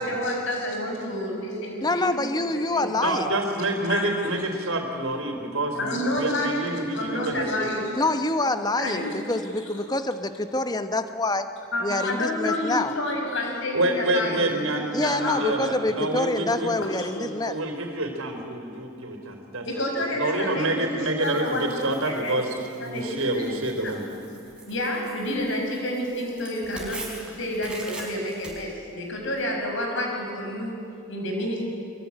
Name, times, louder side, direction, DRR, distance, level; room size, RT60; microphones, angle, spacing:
voice 1, 0.0-1.9 2.2-2.5 2.7-2.9 3.8-4.1 5.8-8.0 8.8-9.2 11.7-15.4 17.0-17.1 19.6-20.9 21.2-22.4 22.8-23.5 23.8-23.9 24.7-30.7 31.1-31.6, left 1 dB, 55° left, 1 dB, 6.1 m, -29 dB
voice 2, 1.8-3.3 8.0-11.5 11.8-12.9 14.9-17.6, left 2 dB, 20° left, 9 dB, 1.1 m, -26 dB
voice 3, 3.0-7.7 13.7-16.8 17.2-19.8 20.1-24.0, right 1 dB, 70° right, 4 dB, 4.0 m, -27 dB
Tearing, 21.2-29.4, right 2 dB, 5° right, 4.7 m, -44 dB
23.5 x 23.0 x 10.0 m, 2.6 s
head